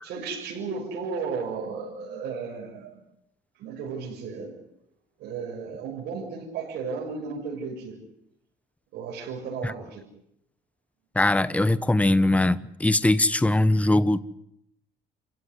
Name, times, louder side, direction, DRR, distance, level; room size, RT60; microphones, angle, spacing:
voice 1, 0.0-3.0 3.6-4.5 5.2-8.0 8.9-10.0, right 5 dB, 75° right, 6.9 m, -34 dB
voice 2, 11.2-14.2, left 1 dB, 10° left, 1.0 m, -21 dB
28.0 x 16.5 x 9.8 m
cardioid pair, 110°, 17 cm